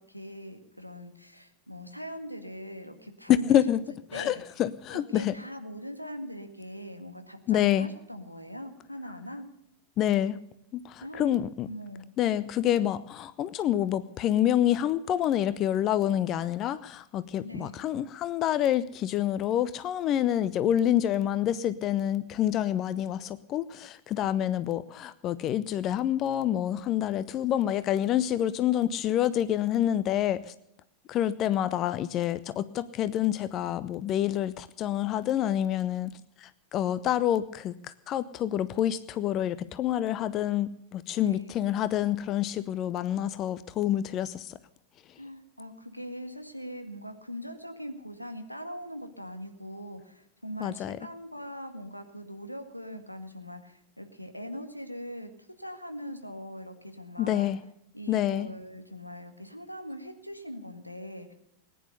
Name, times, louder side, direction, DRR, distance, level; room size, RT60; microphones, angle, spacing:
voice 1, 0.0-3.8 4.1-4.4 4.9-9.5 11.0-12.1 17.4-17.8 41.2-41.6 45.2-57.5 57.9-61.3, equal, 90° left, 6 dB, 1.9 m, -41 dB
voice 2, 3.3-3.8 4.1-5.3 7.5-7.9 10.0-10.4 10.7-11.7 12.2-30.5 31.1-36.1 36.4-37.7 38.1-44.5 50.6-51.0 57.2-57.6 58.1-58.5, left 11 dB, 35° left, 16 dB, 0.6 m, -27 dB
19.5 x 10.0 x 6.8 m, 0.78 s
figure-of-eight pair, 90°, 0 cm